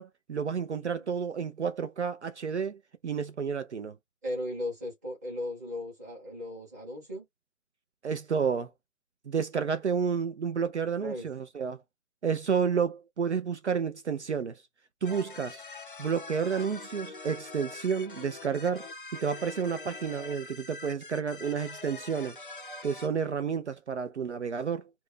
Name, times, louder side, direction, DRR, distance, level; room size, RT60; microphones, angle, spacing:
voice 1, 0.0-2.8 3.0-4.0 8.0-8.7 9.3-11.8 12.2-14.6 15.0-15.6 16.0-18.9 19.2-22.4 22.8-24.9, right 6 dB, 55° right, 0.5 m, -30 dB
voice 2, 0.7-1.1 4.2-7.2 11.0-11.3, left 1 dB, 15° right, 0.8 m, -37 dB
sound 1, 15.0-23.1, left 3 dB, 40° left, 0.5 m, -44 dB
2.5 x 2.2 x 3.3 m
hypercardioid pair, 160°, 43 cm